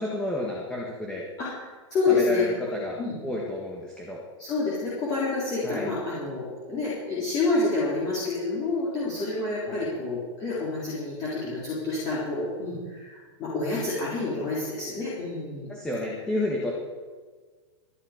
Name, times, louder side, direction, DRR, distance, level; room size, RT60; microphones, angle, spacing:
voice 1, 0.0-1.2 2.1-4.2 5.6-5.9 9.7-9.8 15.7-16.7, left 1 dB, 5° left, -3 dB, 1.7 m, -31 dB
voice 2, 1.9-2.4 3.0-3.2 4.4-15.7, left 3 dB, 25° left, -7 dB, 3.8 m, -28 dB
23.0 x 11.0 x 5.1 m, 1.4 s
supercardioid pair, 170°, 16 cm